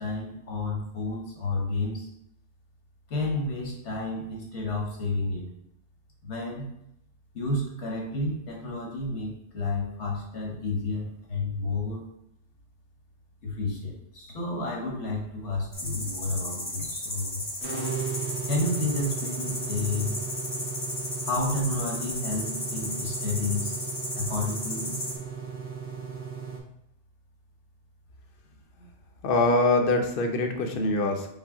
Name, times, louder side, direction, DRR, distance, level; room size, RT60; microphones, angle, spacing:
voice 1, 0.0-2.1 3.1-5.4 6.2-6.7 7.3-12.0 13.4-17.5 18.5-20.2 20.5-20.7 21.2-23.9 24.1-25.3, left 2 dB, 90° left, -2 dB, 1.4 m, -31 dB
sound 1, 15.7-25.2, left 1 dB, 25° left, 0.8 m, -34 dB
sound 2, 17.6-26.6, right 6 dB, 75° right, 1.1 m, -36 dB
voice 2, 29.2-31.3, left 2 dB, 60° left, 4 dB, 0.8 m, -24 dB
5.5 x 2.2 x 3.6 m, 0.78 s
omnidirectional pair, 1.1 m